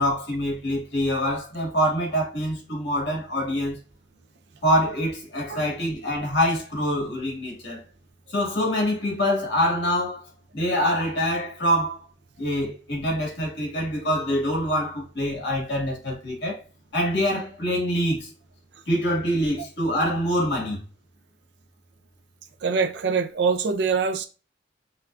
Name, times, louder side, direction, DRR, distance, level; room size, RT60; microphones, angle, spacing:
voice 1, 0.0-3.8 4.6-7.8 8.3-10.2 10.5-12.0 12.4-16.6 16.9-18.3 18.9-20.8, equal, 60° left, 1.9 m, -25 dB
voice 2, 22.6-24.3, right 5 dB, 65° right, 0.4 m, -24 dB
5.6 x 2.3 x 2.4 m
head